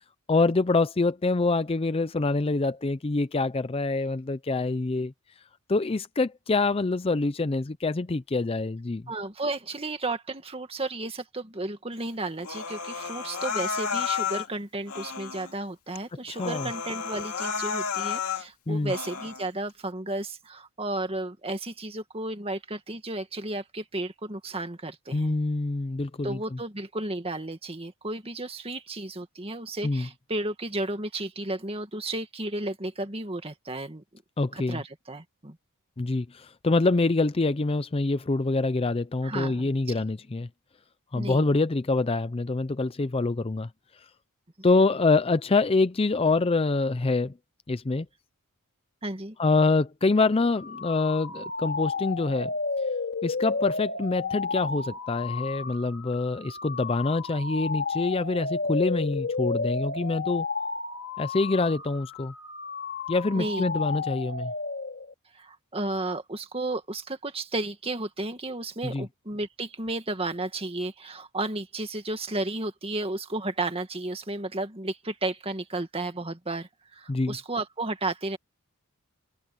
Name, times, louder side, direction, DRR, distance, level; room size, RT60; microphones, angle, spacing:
voice 1, 0.3-5.1 5.7-9.0 16.3-16.7 18.7-18.9 25.1-26.6 29.8-30.1 34.4-34.8 36.0-40.5 41.1-43.7 44.6-47.3 47.7-48.1 49.4-52.5 53.2-60.5 61.2-62.3 63.1-64.5 68.8-69.1 77.1-77.4, left 3 dB, 25° left, 0.5 m, -25 dB
voice 2, 9.1-25.4 26.2-34.0 34.5-35.6 39.2-39.7 41.1-41.5 44.6-44.7 49.0-49.4 63.3-63.6 65.3-78.4, right 2 dB, 25° right, 2.0 m, -33 dB
Human voice, 12.4-14.5 14.9-15.5 16.0-16.1 16.3-18.5 18.9-19.5, left 6 dB, 80° left, 2.6 m, -32 dB
sound 1, 50.5-65.1, left 4 dB, 50° left, 3.3 m, -32 dB
open air
head